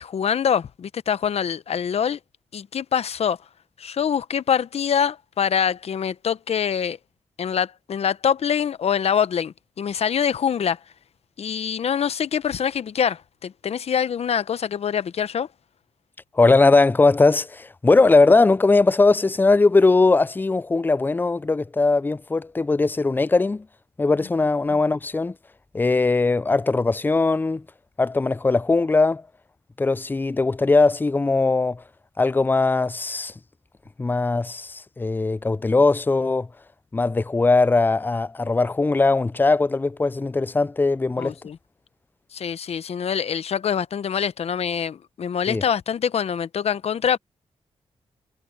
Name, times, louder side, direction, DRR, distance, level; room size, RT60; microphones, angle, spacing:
voice 1, 0.0-2.2 2.5-3.4 3.8-7.0 7.4-10.8 11.4-15.5 41.2-41.6 42.3-47.2, left 8 dB, 65° left, 0.8 m, -24 dB
voice 2, 16.3-23.7 24.0-25.4 25.7-27.7 28.0-29.3 29.8-31.8 32.2-33.3 34.0-36.5 36.9-41.4 45.5-45.6, left 3 dB, 15° left, 0.4 m, -20 dB
cardioid pair, 65°, 11 cm